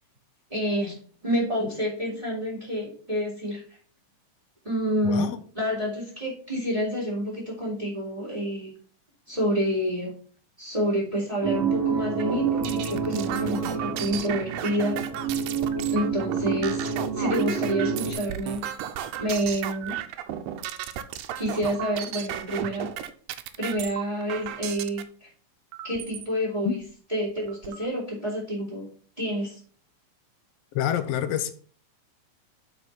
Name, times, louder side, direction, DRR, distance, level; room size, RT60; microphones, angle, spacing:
voice 1, 0.5-1.0 1.2-3.8 4.6-8.7 9.3-10.1 10.6-15.0 15.9-18.6 19.2-19.9 21.4-22.9 23.6-25.3 25.8-26.8 27.1-28.9 29.2-29.6, equal, 10° right, -3 dB, 3.1 m, -28 dB
sound 1, 11.4-18.1, right 6 dB, 40° right, 2.5 m, -28 dB
sound 2, 12.2-25.0 25.7-26.3 26.8-26.9 27.2-27.9, right 10 dB, 80° right, 2.1 m, -35 dB
voice 2, 30.7-31.5, left 10 dB, 90° left, 9 dB, 1.4 m, -26 dB
8.2 x 5.2 x 5.8 m, 0.43 s
omnidirectional pair, 3.8 m